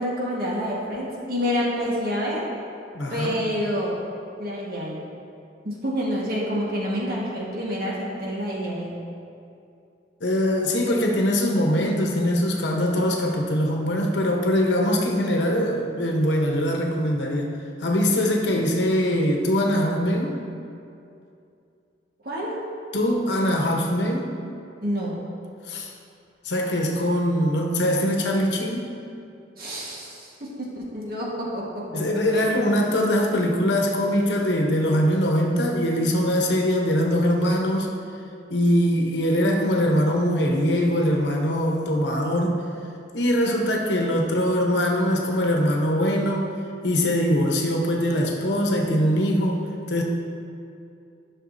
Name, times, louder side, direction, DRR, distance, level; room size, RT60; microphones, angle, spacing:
voice 1, 0.0-2.4 3.1-3.9 4.4-5.0 5.6-8.9 22.2-22.5 24.8-25.2 29.6-32.0 32.3-32.4, equal, 55° right, -5 dB, 1.5 m, -28 dB
voice 2, 2.9-3.4 10.2-17.5 17.8-20.4 22.9-24.3 25.7-25.9 26.4-28.8 31.9-37.9 38.5-42.6 43.1-46.5 46.8-49.6 49.9-50.0, equal, 75° left, 1 dB, 0.9 m, -22 dB
11.0 x 5.9 x 2.7 m, 2.6 s
head